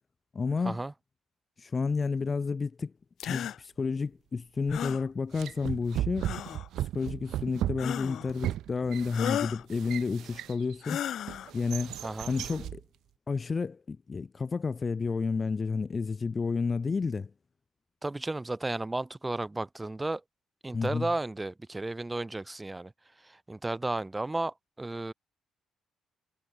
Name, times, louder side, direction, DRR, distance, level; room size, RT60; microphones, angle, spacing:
voice 1, 0.3-0.8 1.6-2.9 3.3-6.3 6.8-11.0 11.5-12.0 12.3-12.8 13.3-17.3 20.7-21.1, left 4 dB, 35° left, 0.9 m, -31 dB
sound 1, 3.2-3.6 4.7-5.0 6.2-6.7 7.8-8.3 9.1-9.6 10.8-11.5, left 10 dB, 70° left, 0.6 m, -34 dB
sound 2, 4.7-4.9 5.3-10.8 11.3-12.8, right 12 dB, 80° right, 2.9 m, -36 dB
voice 2, 18.0-20.2 20.6-22.9 23.2-25.1, right 2 dB, 15° right, 2.9 m, -33 dB
cardioid pair, 90°, 0 cm